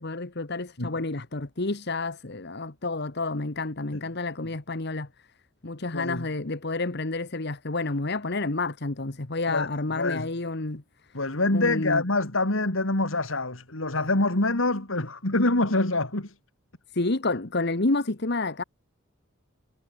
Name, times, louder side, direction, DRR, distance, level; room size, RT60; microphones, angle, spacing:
voice 1, 0.0-5.1 5.6-10.8 11.5-12.0 16.9-18.6, left 2 dB, 55° left, 1.4 m, -29 dB
voice 2, 5.9-6.3 9.5-9.7 9.9-10.3 11.1-16.4, left 2 dB, 75° left, 3.3 m, -25 dB
head